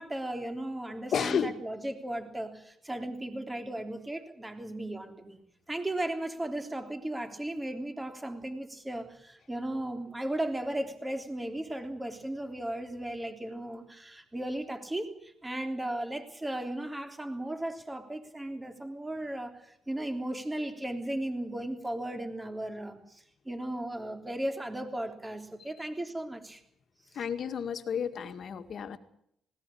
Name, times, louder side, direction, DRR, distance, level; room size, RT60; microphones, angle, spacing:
voice 1, 0.0-5.4 5.7-26.6, right 1 dB, 15° right, 6 dB, 3.5 m, -36 dB
voice 2, 1.1-1.6 27.1-29.0, left 7 dB, 55° left, 8 dB, 2.0 m, -31 dB
20.0 x 18.0 x 8.7 m, 0.72 s
cardioid pair, 90°, 0 cm